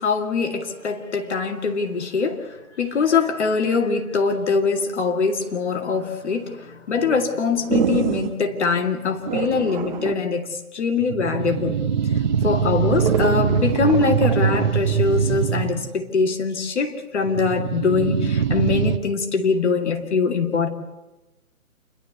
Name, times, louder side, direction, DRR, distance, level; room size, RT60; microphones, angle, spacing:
voice 1, 0.0-11.8 12.4-20.7, left 5 dB, 50° left, 4 dB, 2.3 m, -23 dB
sound 1, 7.7-8.4 9.3-10.2 11.0-15.9 17.2-19.0, right 7 dB, 30° right, 1.0 m, -22 dB
29.0 x 12.0 x 8.1 m, 1.1 s
hypercardioid pair, 150°, 44 cm